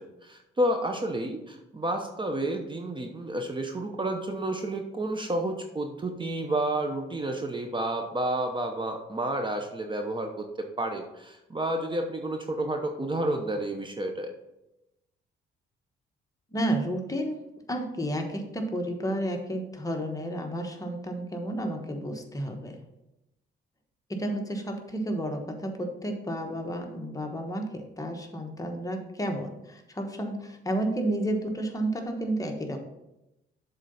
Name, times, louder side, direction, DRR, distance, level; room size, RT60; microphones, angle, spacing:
voice 1, 0.2-10.4 10.8-14.3, right 1 dB, 25° right, 4 dB, 0.8 m, -30 dB
voice 2, 16.5-22.8 24.1-32.8, right 1 dB, 15° left, 3 dB, 1.2 m, -31 dB
7.4 x 3.8 x 5.5 m, 0.91 s
cardioid pair, 90°, 20 cm